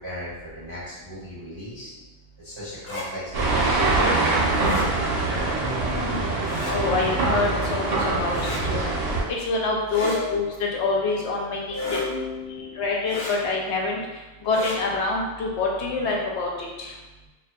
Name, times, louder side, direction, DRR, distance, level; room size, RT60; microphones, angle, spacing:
voice 1, 0.0-1.9 2.4-4.2 10.0-10.3 11.7-12.8, left 1 dB, 30° right, -11 dB, 0.6 m, -34 dB
sound 1, 2.8-3.1 4.6-4.9 6.4-6.7 8.3-8.6 9.9-10.2 11.7-12.0 13.1-13.3 14.4-14.8, left 2 dB, 45° left, 0.7 m, -34 dB
sound 2, 3.3-9.2, right 2 dB, 65° right, 0.8 m, -24 dB
voice 2, 5.9-7.9 8.2-8.9 9.3-10.4 10.7-12.0 12.8-14.0 14.4-16.9, left 3 dB, 80° left, -1 dB, 0.9 m, -26 dB
2.6 x 2.2 x 2.3 m, 1.1 s
omnidirectional pair, 1.1 m